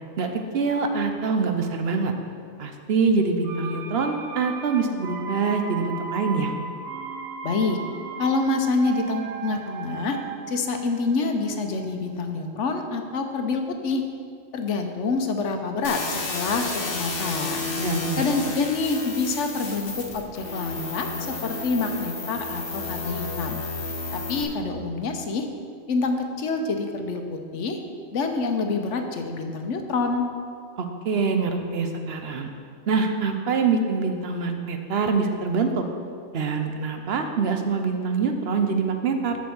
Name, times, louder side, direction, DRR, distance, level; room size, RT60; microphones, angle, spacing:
voice 1, 0.5-2.1 2.6-6.5 17.8-18.2 30.8-32.5 32.9-35.8 36.3-39.4, right 4 dB, 60° right, 5 dB, 0.9 m, -25 dB
sound 1, 3.4-13.2 13.5-13.6, right 5 dB, 85° right, 1.0 m, -37 dB
voice 2, 7.4-7.8 8.2-10.2 10.5-14.0 14.5-17.6 18.2-23.6 24.1-25.5 25.9-27.8 28.1-30.3, left 3 dB, 80° left, 5 dB, 1.1 m, -27 dB
sound 2, 15.8-24.4, left 3 dB, 55° left, 1.2 m, -31 dB
7.4 x 5.2 x 7.1 m, 2.3 s
omnidirectional pair, 1.2 m